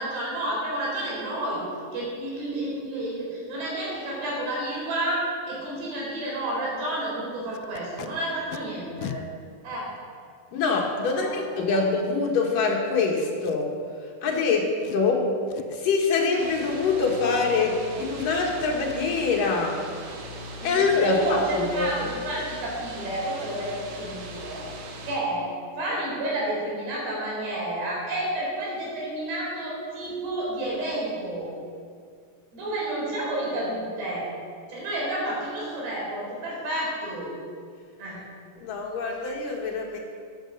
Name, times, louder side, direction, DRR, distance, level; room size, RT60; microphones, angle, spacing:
voice 1, 0.0-1.6 1.9-9.2 9.6-9.9 11.1-11.3 11.7-11.8 20.6-20.7 21.0-25.5 25.8-31.5 32.5-34.3 34.7-37.3 38.0-38.2, right 1 dB, 85° right, -4 dB, 6.5 m, -30 dB
Packing tape duct tape, 7.5-8.1 8.5-8.6 9.0-9.2 10.0-10.1 13.4-13.8 14.3-14.4 14.8-15.1 15.5-15.9 16.5-17.1 17.3-17.8 18.2-18.3 18.6-19.0 22.0-22.1 22.4-22.6 23.0-23.1 23.4-23.6 23.9-24.0, left 12 dB, 85° left, 2.1 m, -41 dB
voice 2, 10.5-19.8 20.6-21.9 38.6-40.0, left 4 dB, 60° left, 0 dB, 2.8 m, -25 dB
sound 1, 16.4-25.2, right 1 dB, 65° right, 3.3 m, -40 dB
14.0 x 9.4 x 6.5 m, 2.2 s
omnidirectional pair, 4.7 m